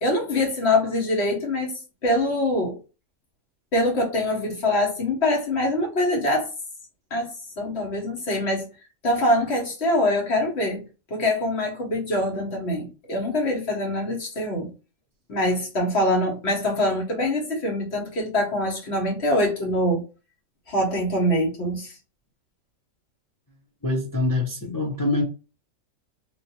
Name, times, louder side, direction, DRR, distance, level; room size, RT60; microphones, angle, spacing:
voice 1, 0.0-2.8 3.7-6.5 7.1-8.7 9.0-14.7 15.3-20.0 20.7-21.9, left 1 dB, 50° left, 1.5 m, -24 dB
voice 2, 23.8-25.2, left 2 dB, 20° left, 0.5 m, -24 dB
3.2 x 2.9 x 2.8 m
omnidirectional pair, 1.4 m